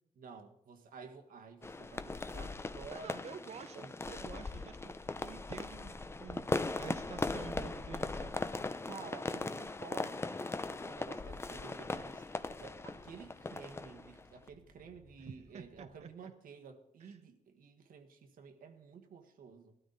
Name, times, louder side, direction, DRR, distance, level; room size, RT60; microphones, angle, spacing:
voice 1, 0.2-3.3 3.7-4.3 8.9-12.2 12.6-19.7, right 5 dB, 90° right, 1.5 m, -52 dB
sound 1, 1.6-14.5, left 3 dB, 20° left, 0.5 m, -39 dB
voice 2, 2.9-6.5 6.8-8.4 15.2-16.3 17.0-17.2, right 6 dB, 50° right, 0.6 m, -49 dB
sound 2, 3.4-16.0, left 2 dB, 75° left, 2.4 m, -67 dB
18.5 x 12.5 x 4.0 m
wide cardioid pair, 160°, 14 cm